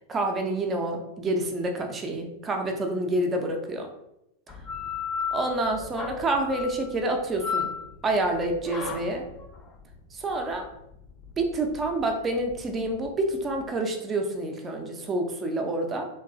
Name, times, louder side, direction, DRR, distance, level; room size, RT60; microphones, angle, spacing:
voice 1, 0.1-3.9 5.3-7.7 8.0-9.3 10.1-10.7 11.4-16.1, right 2 dB, 20° right, 3 dB, 0.4 m, -28 dB
sound 1, 4.5-13.7, left 6 dB, 30° left, 0.6 m, -35 dB
2.9 x 2.3 x 2.5 m, 0.83 s
figure-of-eight pair, 90°, 0 cm